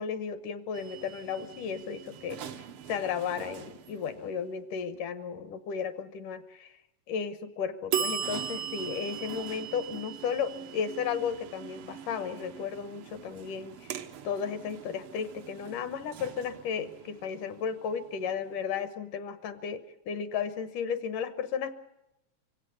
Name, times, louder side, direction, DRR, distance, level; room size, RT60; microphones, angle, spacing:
voice 1, 0.0-2.4 2.9-6.7 7.1-14.0 14.2-21.7, left 7 dB, 75° left, 12 dB, 2.5 m, -34 dB
sound 1, 0.7-4.5 7.9-18.6, right 8 dB, 75° right, 1.2 m, -40 dB
25.0 x 16.5 x 9.6 m, 0.88 s
omnidirectional pair, 3.9 m